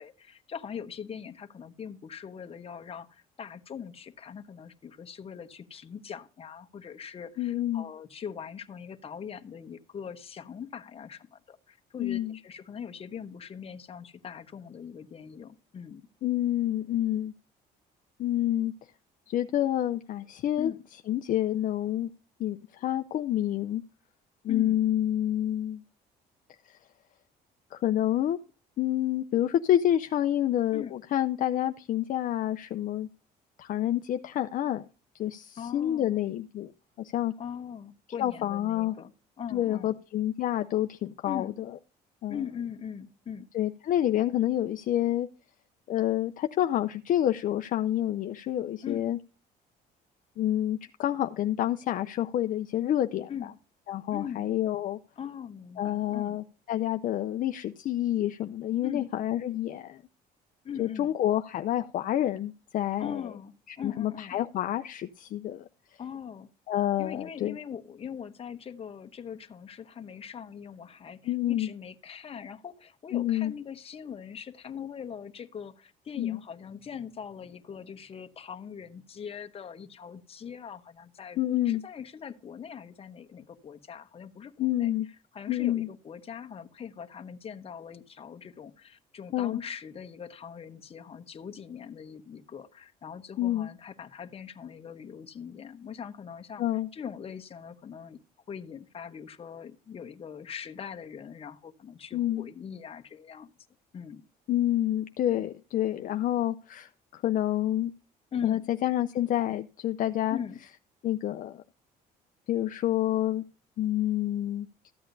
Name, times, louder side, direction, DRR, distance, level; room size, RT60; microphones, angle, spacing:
voice 1, 0.0-16.0 20.6-20.9 24.5-24.8 30.7-31.0 35.6-36.2 37.4-39.1 39.4-39.9 41.2-41.6 42.3-43.5 48.8-49.0 53.3-53.5 54.1-54.5 55.2-56.4 58.8-59.1 60.6-61.1 63.0-64.4 66.0-66.5 67.0-84.9 85.3-96.6 96.9-98.2 98.5-103.5 103.9-104.3 108.3-108.6 110.3-110.6, left 7 dB, 35° left, 0.9 m, -41 dB
voice 2, 7.4-7.9 12.0-12.4 16.2-17.3 18.2-18.7 19.3-20.7 21.1-22.1 22.4-23.8 24.4-25.8 26.6-26.8 27.7-28.4 28.8-33.1 33.6-34.9 35.2-36.7 37.0-37.3 38.2-39.0 39.5-41.5 42.2-42.4 43.5-45.3 45.9-49.2 50.4-53.3 53.9-55.0 55.8-60.0 60.8-63.3 63.7-65.7 66.7-67.6 71.3-71.7 73.1-73.5 76.2-76.4 81.4-81.8 84.6-85.1 85.5-85.9 89.3-89.6 93.4-93.7 96.6-96.9 102.1-102.5 104.5-107.9 108.4-110.4 111.0-111.6 112.5-113.4 113.8-114.7, left 12 dB, 55° left, 0.5 m, -28 dB
14.0 x 8.6 x 2.6 m
cardioid pair, 110°, 17 cm